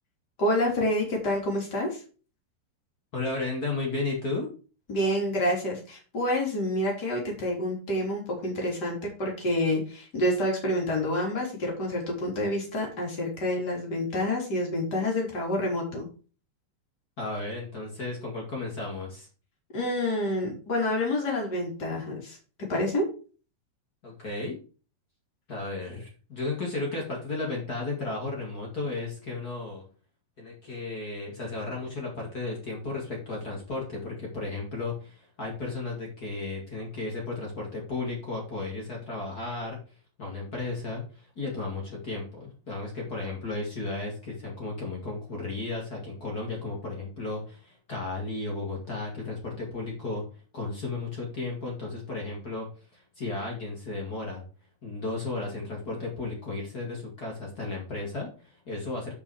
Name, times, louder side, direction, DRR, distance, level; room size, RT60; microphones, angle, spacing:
voice 1, 0.4-2.0 4.9-16.0 19.7-22.4 22.7-23.0, left 1 dB, 25° left, -1 dB, 3.2 m, -28 dB
voice 2, 3.1-4.5 17.2-19.3 24.0-24.6 25.5-29.9 30.4-39.8 40.2-50.2 50.5-52.7 52.9-54.4 54.8-59.1, left 3 dB, 45° left, -1 dB, 1.3 m, -34 dB
9.1 x 5.6 x 4.9 m, 0.37 s
omnidirectional pair, 5.7 m